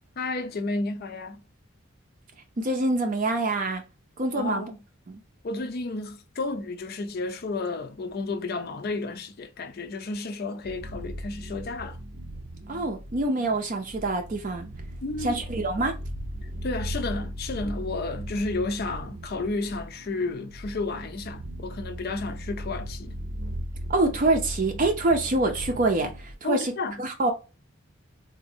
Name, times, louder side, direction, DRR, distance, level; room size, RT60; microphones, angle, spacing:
voice 1, 0.2-1.4 4.3-4.8 5.4-12.0 15.0-15.3 16.4-23.2 26.4-27.0, left 3 dB, 45° left, 0.4 m, -32 dB
voice 2, 2.6-3.8 4.2-4.7 5.1-5.2 12.7-14.6 15.2-15.9 23.9-26.7 27.0-27.3, right 2 dB, 40° right, 0.5 m, -25 dB
sound 1, 10.6-26.3, equal, 85° right, 0.8 m, -38 dB
3.9 x 2.5 x 2.7 m
head